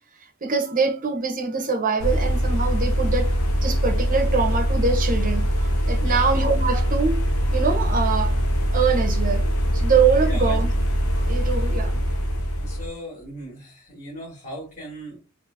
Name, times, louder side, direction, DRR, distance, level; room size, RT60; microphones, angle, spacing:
voice 1, 0.2-8.4 8.7-9.4 9.7-10.7 11.2-12.0, right 5 dB, 35° right, 0.7 m, -24 dB
sound 1, 2.0-12.9, equal, 70° left, 0.6 m, -22 dB
voice 2, 5.9-6.3 10.2-10.6 11.1-11.6 12.6-15.2, equal, 35° left, 1.5 m, -38 dB
4.0 x 2.6 x 2.5 m
head